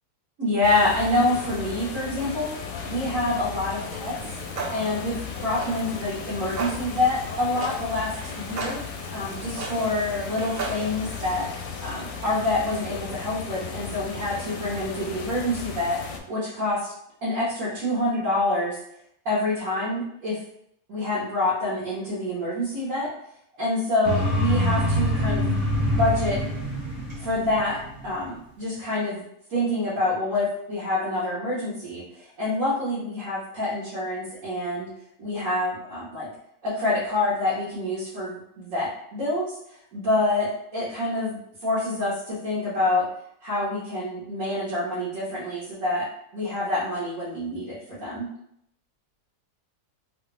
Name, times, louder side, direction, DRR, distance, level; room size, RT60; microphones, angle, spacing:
voice 1, 0.4-2.5 2.8-4.1 4.7-5.2 5.4-8.1 8.4-8.8 9.1-11.5 11.8-16.0 16.3-16.9 17.2-18.7 19.2-20.4 20.9-23.1 23.6-25.5 25.9-26.4 27.1-29.2 29.5-34.9 35.2-36.3 36.6-39.5 39.9-40.5 40.7-43.0 43.4-46.1 46.3-48.3, left 2 dB, 55° right, -9 dB, 1.5 m, -26 dB
sound 1, 0.6-16.2, left 5 dB, 85° left, 1.1 m, -36 dB
Clock, 4.0-11.4, right 3 dB, 90° right, 0.5 m, -37 dB
sound 2, 24.0-28.2, equal, 40° right, 1.6 m, -25 dB
3.3 x 2.4 x 3.2 m, 0.73 s
omnidirectional pair, 1.7 m